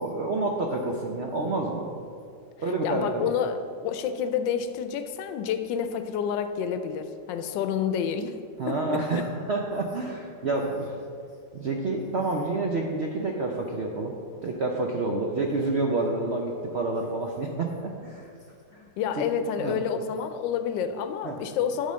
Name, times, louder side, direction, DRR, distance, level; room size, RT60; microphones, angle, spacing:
voice 1, 0.0-1.9 2.6-3.3 8.6-10.9 11.5-14.1 14.4-18.3 18.7-18.8 19.2-19.3 19.6-19.8 21.2-21.4, right 2 dB, 85° right, 0 dB, 0.5 m, -28 dB
voice 2, 2.8-8.4 8.7-9.2 18.8-21.9, left 7 dB, 80° left, 9 dB, 1.3 m, -29 dB
10.5 x 3.6 x 6.2 m, 2.4 s
omnidirectional pair, 2.0 m